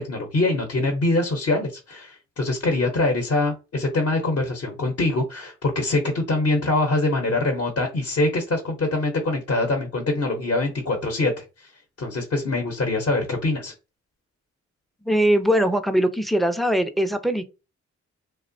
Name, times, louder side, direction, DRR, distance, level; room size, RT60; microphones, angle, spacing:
voice 1, 0.0-11.7 12.0-13.7, left 2 dB, 50° left, 0.7 m, -24 dB
voice 2, 15.0-17.5, equal, ahead, 0.3 m, -21 dB
2.8 x 2.0 x 2.6 m
cardioid pair, 60°, 30 cm